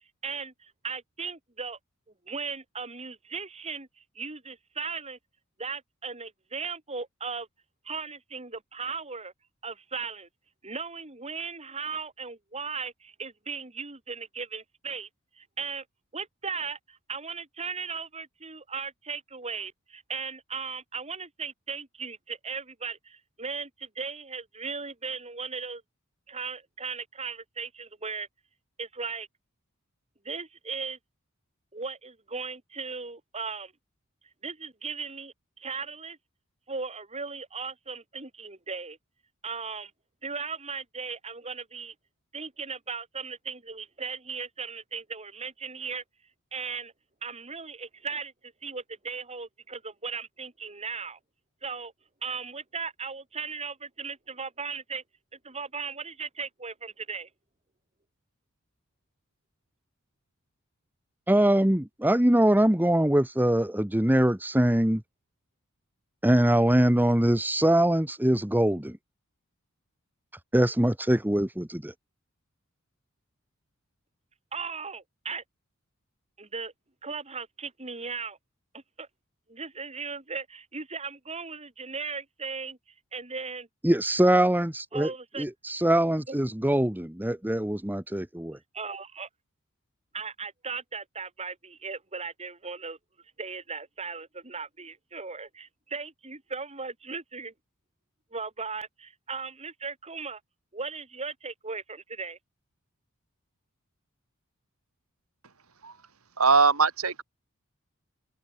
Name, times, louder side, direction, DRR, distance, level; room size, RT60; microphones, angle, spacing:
voice 1, 0.2-1.8 2.3-3.9 4.1-5.2 5.6-7.5 7.8-9.3 9.6-10.3 10.6-15.1 15.4-15.8 16.1-25.8 26.3-28.3 28.8-29.3 30.2-31.0 31.7-33.7 34.4-36.2 36.7-39.0 39.4-39.9 40.2-41.9 42.3-46.0 46.5-46.9 47.2-51.2 51.6-51.9 52.2-55.0 55.4-57.3 74.5-75.4 76.4-76.7 77.0-78.4 78.7-79.1 79.5-82.8 83.1-83.7 84.9-85.5 86.3-86.4 88.7-89.3 90.1-93.0 93.4-97.5 98.3-100.4 100.7-102.4, right 5 dB, 30° right, 4.3 m, -37 dB
voice 2, 61.3-65.0 66.2-69.0 70.5-71.9 83.8-85.1 85.4-88.6, right 1 dB, 10° right, 1.2 m, -23 dB
voice 3, 106.4-107.2, right 4 dB, 85° right, 3.4 m, -21 dB
open air
head